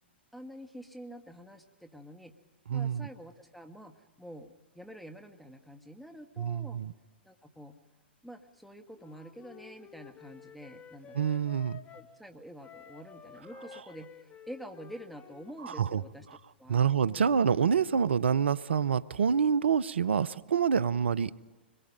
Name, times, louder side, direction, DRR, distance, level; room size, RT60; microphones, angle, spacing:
voice 1, 0.3-2.4 2.7-6.8 7.2-7.8 8.2-11.3 11.9-16.3 16.6-17.3, equal, ahead, 5 dB, 1.6 m, -48 dB
voice 2, 2.7-3.1 6.4-6.9 11.1-11.8 15.6-16.0 16.7-21.3, right 7 dB, 75° right, 20 dB, 0.7 m, -27 dB
Wind instrument woodwind instrument, 9.0-12.1 12.6-15.9, left 8 dB, 25° left, 1.6 m, -52 dB
26.0 x 22.0 x 5.3 m, 1.4 s
hypercardioid pair, 115°, 6 cm